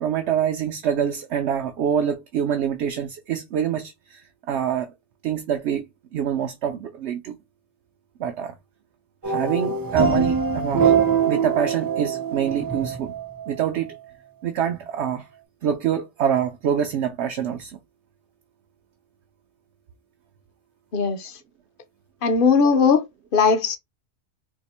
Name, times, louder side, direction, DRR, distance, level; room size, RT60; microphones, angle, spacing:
voice 1, 0.0-4.9 5.2-5.9 6.1-7.4 8.2-8.5 9.2-10.9 11.2-13.1 13.5-14.0 14.4-15.3 15.6-17.8 22.6-22.8, right 9 dB, 75° right, 0.9 m, -25 dB
sound 1, 9.2-13.5, right 6 dB, 25° right, 0.6 m, -23 dB
voice 2, 20.9-21.4 22.2-23.0 23.3-23.8, left 5 dB, 55° left, 0.8 m, -19 dB
2.7 x 2.5 x 4.1 m
omnidirectional pair, 1.2 m